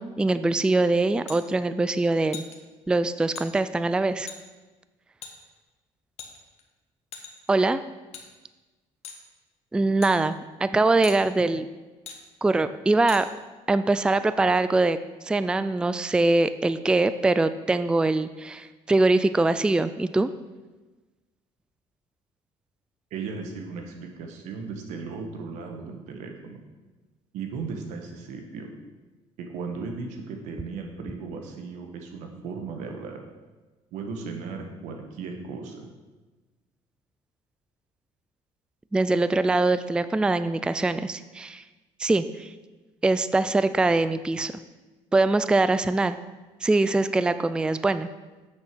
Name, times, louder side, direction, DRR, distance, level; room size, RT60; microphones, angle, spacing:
voice 1, 0.0-2.4 2.9-4.3 7.5-7.8 9.7-11.7 12.4-13.3 13.7-15.0 15.2-20.3 38.9-41.6 42.0-42.5 43.0-44.5 45.1-46.2 46.6-48.1, right 2 dB, 5° right, 13 dB, 0.3 m, -23 dB
sound 1, 1.3-1.4 2.3-2.6 3.4-3.5 4.3-4.4 5.2-5.3 6.2-6.6 7.1-7.5 8.1-8.3 9.0-9.2 10.0-10.1 11.0-11.2 12.1-12.2 13.1-13.2, left 7 dB, 60° left, 1.4 m, -40 dB
voice 2, 23.1-26.6 27.3-28.7 29.4-33.2 33.9-35.9, right 4 dB, 90° right, 3 dB, 1.5 m, -36 dB
8.2 x 6.4 x 6.1 m, 1.2 s
cardioid pair, 115°, 12 cm